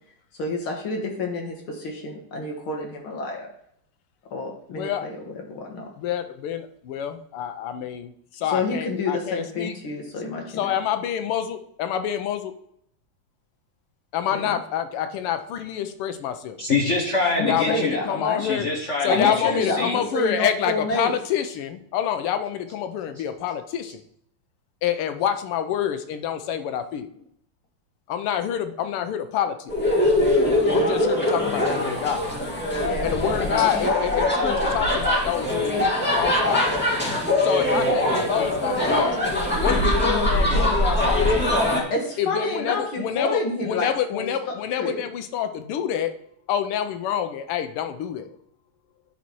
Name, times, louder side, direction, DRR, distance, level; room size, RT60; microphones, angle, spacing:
voice 1, 0.4-3.5 4.3-5.9 8.5-10.7 14.3-14.6 17.4-18.4 19.1-21.1 32.8-33.7 41.9-44.3 44.8-45.0, left 2 dB, 70° left, 1 dB, 2.3 m, -29 dB
voice 2, 4.7-5.0 6.0-9.7 10.6-12.5 14.1-16.6 17.5-18.7 19.0-24.0 24.8-27.1 28.1-29.7 30.7-32.3 33.0-36.6 37.4-39.3 39.6-41.5 42.2-46.1 46.5-48.3, left 9 dB, 85° left, 8 dB, 1.7 m, -27 dB
voice 3, 16.6-18.0 18.4-20.0 31.6-31.8, left 3 dB, 40° left, -1 dB, 1.2 m, -25 dB
sound 1, 29.7-41.8, left 1 dB, 5° left, 1.9 m, -22 dB
10.5 x 4.2 x 4.6 m, 0.70 s
omnidirectional pair, 2.4 m